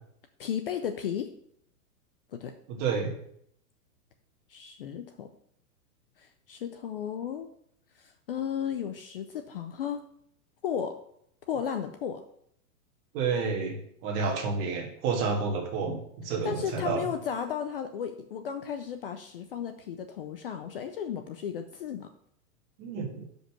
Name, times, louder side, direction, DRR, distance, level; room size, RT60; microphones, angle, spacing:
voice 1, 0.4-1.3 2.3-2.5 4.5-5.3 6.2-7.5 8.0-10.0 10.6-11.0 11.5-12.2 16.4-22.1, left 8 dB, 40° left, 7 dB, 0.5 m, -34 dB
voice 2, 2.7-3.1 13.1-17.0 22.8-23.2, right 5 dB, 30° right, 1 dB, 1.5 m, -30 dB
6.5 x 5.3 x 5.8 m, 0.70 s
hypercardioid pair, 155°, 45 cm